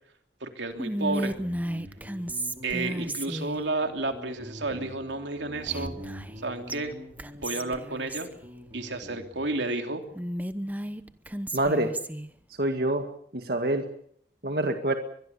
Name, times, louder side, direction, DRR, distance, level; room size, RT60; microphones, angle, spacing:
voice 1, 0.4-1.3 2.6-6.0 6.4-6.9 7.3-8.3 8.7-10.0, right 3 dB, 90° right, 5 dB, 3.1 m, -31 dB
Whispering, 0.8-3.6 5.7-6.4 6.7-6.8 7.2-8.3 10.1-12.3, right 1 dB, 10° right, 0.9 m, -33 dB
Guitar, 1.1-9.5, equal, 25° right, 6.4 m, -45 dB
voice 2, 11.5-11.9 12.6-13.1 13.3-13.9 14.4-14.9, right 1 dB, 55° right, 5 dB, 2.0 m, -26 dB
23.5 x 22.0 x 7.1 m, 0.64 s
head